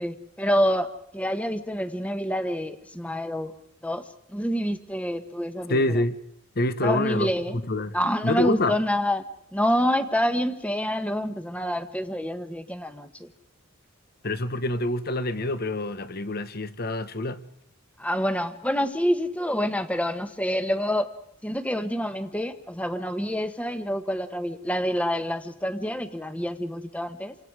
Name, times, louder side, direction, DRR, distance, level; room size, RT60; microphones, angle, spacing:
voice 1, 0.0-3.5 3.8-6.0 6.8-7.6 7.9-9.2 9.5-13.3 18.0-21.1 21.4-27.4, equal, 5° left, 1.3 m, -27 dB
voice 2, 5.7-6.2 6.5-7.3 7.7-7.9 8.2-8.8 14.2-17.4, left 1 dB, 50° left, 1.2 m, -26 dB
29.0 x 25.0 x 4.9 m
head